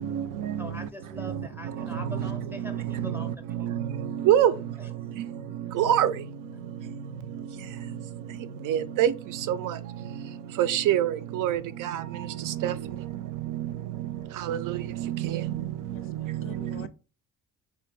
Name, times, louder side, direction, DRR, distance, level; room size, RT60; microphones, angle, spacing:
voice 1, 0.0-0.7 1.9-2.0 3.0-3.3 3.6-3.9 4.2-4.5 5.8-6.1 8.7-9.1 9.5-9.7 10.6-12.0 12.6-12.7 13.5-13.7 14.5-15.4 16.6-16.7, right 11 dB, 75° right, 0.5 m, -25 dB
voice 2, 0.6-3.3 4.5-4.9, equal, 5° right, 0.6 m, -42 dB
voice 3, 15.9-16.9, left 7 dB, 40° left, 0.4 m, -45 dB
3.3 x 2.5 x 3.4 m
cardioid pair, 115°, 32 cm